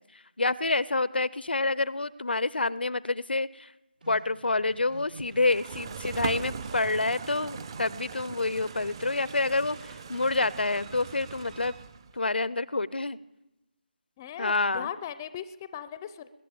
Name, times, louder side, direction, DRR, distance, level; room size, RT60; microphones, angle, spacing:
voice 1, 0.0-3.7 4.1-11.7 12.1-13.2 14.4-14.9, left 3 dB, 85° left, 20 dB, 0.5 m, -28 dB
sound 1, 4.0-11.8, right 2 dB, 70° right, 6.9 m, -52 dB
sound 2, 5.2-12.2, right 5 dB, 30° right, 0.5 m, -40 dB
voice 2, 14.2-16.3, left 9 dB, 20° left, 14 dB, 0.4 m, -38 dB
21.5 x 10.5 x 5.1 m, 0.99 s
figure-of-eight pair, 160°, 5 cm